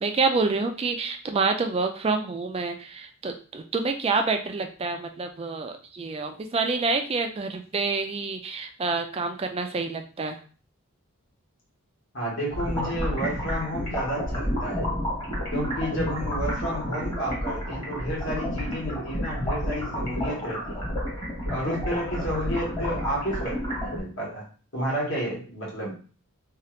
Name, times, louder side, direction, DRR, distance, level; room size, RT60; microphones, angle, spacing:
voice 1, 0.0-10.4, right 4 dB, 25° right, 5 dB, 0.3 m, -27 dB
voice 2, 12.1-14.9 15.5-20.9 21.5-24.4 24.7-26.0, equal, 60° left, -4 dB, 1.3 m, -31 dB
sound 1, 12.5-24.0, equal, 20° left, 1.1 m, -30 dB
2.8 x 2.4 x 3.1 m, 0.39 s
head